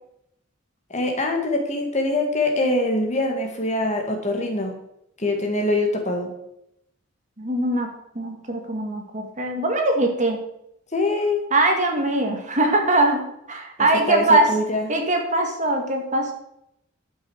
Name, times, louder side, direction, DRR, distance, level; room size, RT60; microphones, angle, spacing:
voice 1, 0.9-4.7 5.2-6.3 10.9-11.4 14.1-14.9, left 2 dB, 35° left, 3 dB, 2.3 m, -23 dB
voice 2, 7.4-7.9 8.2-10.4 11.5-13.2 13.5-14.5 14.9-16.3, right 2 dB, 35° right, 3 dB, 2.2 m, -21 dB
11.5 x 7.2 x 6.5 m, 0.78 s
head